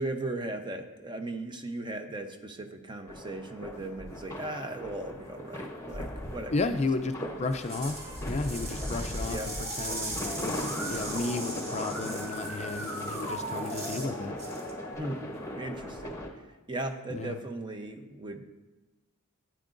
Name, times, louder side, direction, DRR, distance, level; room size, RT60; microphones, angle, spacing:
voice 1, 0.0-6.8 7.2-7.4 9.3-9.5 15.0-15.2 15.6-16.2 16.7-18.5, right 2 dB, 20° right, 6 dB, 0.7 m, -37 dB
sound 1, 3.1-16.3, left 1 dB, 15° left, 1.1 m, -38 dB
voice 2, 6.5-9.4 9.8-14.3 17.1-17.4, left 3 dB, 30° left, 7 dB, 0.4 m, -33 dB
sound 2, 7.4-14.1 14.4-14.7, right 2 dB, 50° right, 2.3 m, -40 dB
Musical instrument, 9.4-14.9, right 1 dB, 75° right, 2.4 m, -40 dB
14.0 x 8.9 x 2.6 m, 1.1 s
head